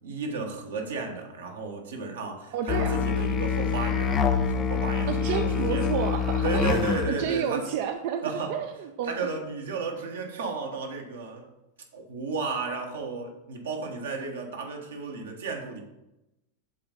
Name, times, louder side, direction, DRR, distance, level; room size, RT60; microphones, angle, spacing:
voice 1, 0.0-5.9 6.4-7.6 8.2-8.6 9.0-11.5 11.9-15.8, right 4 dB, 65° right, 2 dB, 1.2 m, -33 dB
voice 2, 2.5-3.0 5.1-6.8 7.1-8.2 8.5-9.3, right 8 dB, 50° right, 6 dB, 0.4 m, -30 dB
Musical instrument, 2.7-7.2, left 6 dB, 25° left, 0.4 m, -26 dB
7.3 x 3.9 x 5.3 m, 0.94 s
figure-of-eight pair, 90°, 0 cm